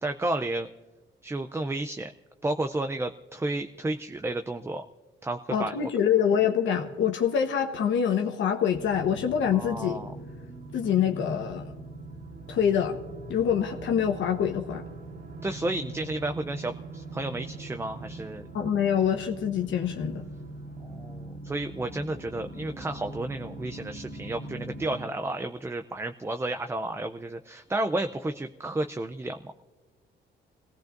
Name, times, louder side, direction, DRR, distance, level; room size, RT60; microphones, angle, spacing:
voice 1, 0.0-0.7 1.2-2.1 2.4-4.8 5.2-5.8 9.5-10.1 15.4-18.5 20.8-29.7, right 2 dB, 15° right, 7 dB, 0.5 m, -32 dB
voice 2, 5.5-10.0 10.7-11.7 12.5-13.0 13.3-14.8 18.5-20.2, left 8 dB, 70° left, 4 dB, 1.2 m, -25 dB
sound 1, 8.7-25.1, right 2 dB, 65° right, 3.0 m, -42 dB
25.5 x 17.5 x 2.6 m, 1.2 s
cardioid pair, 90°, 20 cm